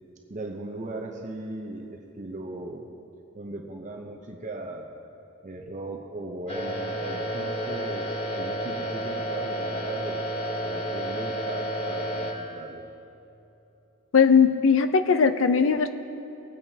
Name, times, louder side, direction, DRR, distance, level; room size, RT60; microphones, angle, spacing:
voice 1, 0.3-2.9 3.3-5.0 5.4-10.3 10.6-12.8, right 2 dB, 35° right, 1 dB, 0.7 m, -38 dB
sound 1, 6.5-12.3, equal, 30° left, 1.1 m, -31 dB
voice 2, 14.1-15.9, left 6 dB, 70° left, 10 dB, 0.6 m, -19 dB
21.5 x 8.9 x 2.8 m, 2.8 s
head